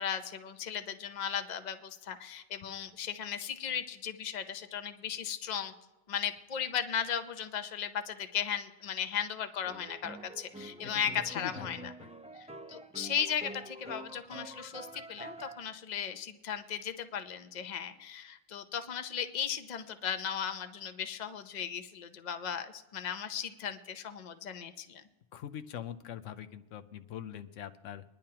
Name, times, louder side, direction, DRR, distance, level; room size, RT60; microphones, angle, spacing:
voice 1, 0.0-5.7 6.1-11.9 12.4-25.0, left 8 dB, 40° left, 9 dB, 0.8 m, -36 dB
sound 1, 9.6-15.6, right 1 dB, 10° right, 0.4 m, -47 dB
voice 2, 10.8-12.1 25.3-28.0, left 9 dB, 90° left, 10 dB, 1.0 m, -43 dB
23.0 x 10.5 x 2.9 m, 1.0 s
omnidirectional pair, 1.2 m